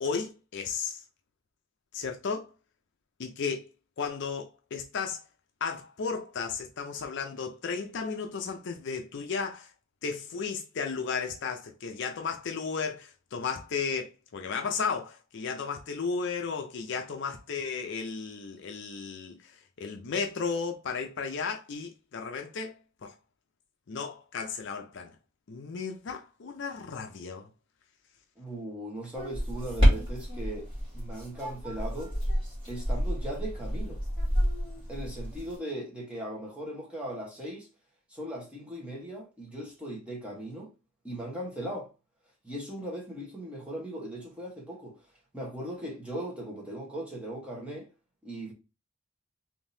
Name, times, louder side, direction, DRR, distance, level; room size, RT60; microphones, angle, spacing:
voice 1, 0.0-1.0 1.9-2.5 3.2-3.7 4.0-5.2 5.6-9.7 10.0-19.5 19.8-22.8 23.0-23.1 23.9-25.1 25.5-27.5, left 5 dB, 55° left, 0.5 m, -34 dB
voice 2, 28.4-30.7 30.9-32.1 32.7-34.0 34.9-37.7 38.1-40.7 41.0-41.9 42.4-44.9 45.3-47.9 48.2-48.5, right 1 dB, 5° right, 1.1 m, -38 dB
sound 1, 29.1-35.6, equal, 25° right, 1.8 m, -29 dB
3.6 x 2.7 x 2.6 m
head